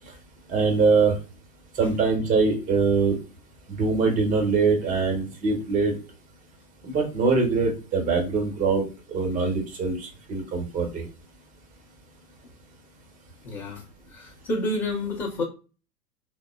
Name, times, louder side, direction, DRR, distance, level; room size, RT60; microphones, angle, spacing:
voice 1, 0.5-1.1 1.8-3.2 3.8-5.9 6.8-11.1, right 4 dB, 15° right, 2 dB, 0.8 m, -23 dB
voice 2, 13.4-13.8 14.1-15.4, left 1 dB, 30° left, -6 dB, 0.9 m, -29 dB
3.4 x 2.1 x 2.2 m, 0.33 s
figure-of-eight pair, 100°, 48 cm